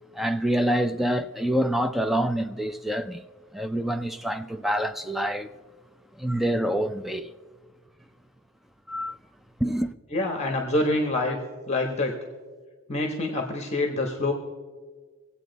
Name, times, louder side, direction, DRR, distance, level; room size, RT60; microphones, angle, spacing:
voice 1, 0.1-3.2 3.5-5.5 6.2-7.3 8.9-9.2 9.6-9.9, equal, ahead, 0.4 m, -26 dB
voice 2, 10.1-11.4 11.7-12.2 12.9-14.3, left 2 dB, 30° left, 1.1 m, -26 dB
22.0 x 8.3 x 4.0 m
head